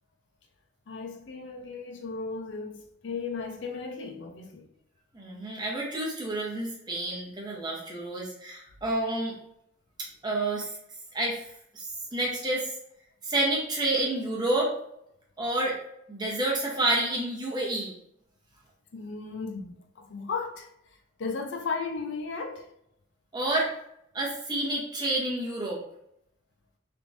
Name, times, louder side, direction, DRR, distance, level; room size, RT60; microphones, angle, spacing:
voice 1, 0.9-4.7 18.9-20.7 21.2-22.7, left 4 dB, 65° left, 0.5 m, -35 dB
voice 2, 5.1-9.3 10.2-10.7 11.1-11.4 11.7-12.7 13.2-14.7 15.4-15.8 16.1-17.9 23.3-23.7 24.1-25.8, right 2 dB, 20° right, 0.9 m, -29 dB
3.4 x 2.9 x 2.6 m
head